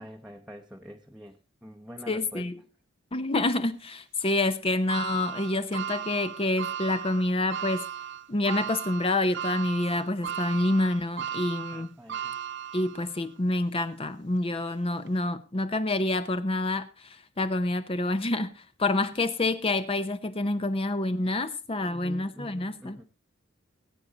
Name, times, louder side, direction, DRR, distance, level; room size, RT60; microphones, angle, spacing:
voice 1, 0.0-2.5 11.7-12.4 21.8-23.0, equal, 5° right, 0.8 m, -45 dB
voice 2, 2.1-2.6 3.1-7.8 8.3-11.9 12.7-23.0, left 2 dB, 30° left, 0.7 m, -28 dB
sound 1, 4.9-13.2 13.7-13.8 15.0-15.1, right 9 dB, 60° right, 0.6 m, -36 dB
19.5 x 8.6 x 4.0 m
head